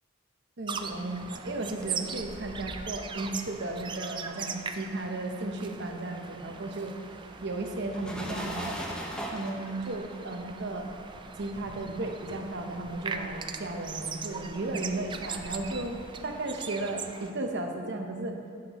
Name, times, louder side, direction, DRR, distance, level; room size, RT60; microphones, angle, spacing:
voice 1, 0.6-6.9 7.4-8.8 9.3-10.9 11.4-18.4, right 2 dB, 60° right, 3 dB, 0.8 m, -35 dB
sound 1, 0.7-17.3, right 5 dB, 25° right, 0.3 m, -40 dB
sound 2, 1.5-5.1 5.4-16.1, equal, 5° left, 0.7 m, -43 dB
10.0 x 7.4 x 3.0 m, 2.2 s
head